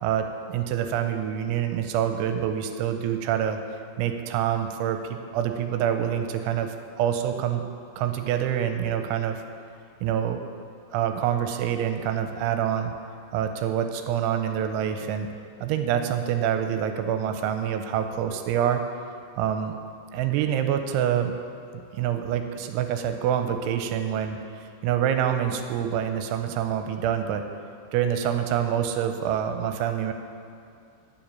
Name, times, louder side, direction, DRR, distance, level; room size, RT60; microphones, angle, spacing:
voice 1, 0.0-3.6 4.0-7.6 8.0-9.4 10.0-10.4 10.9-12.9 13.3-15.3 15.6-18.8 19.4-19.8 20.1-21.4 21.9-24.4 24.8-27.5 27.9-30.1, right 9 dB, 90° right, 7 dB, 3.0 m, -26 dB
10.5 x 6.2 x 8.6 m, 2.4 s
omnidirectional pair, 5.4 m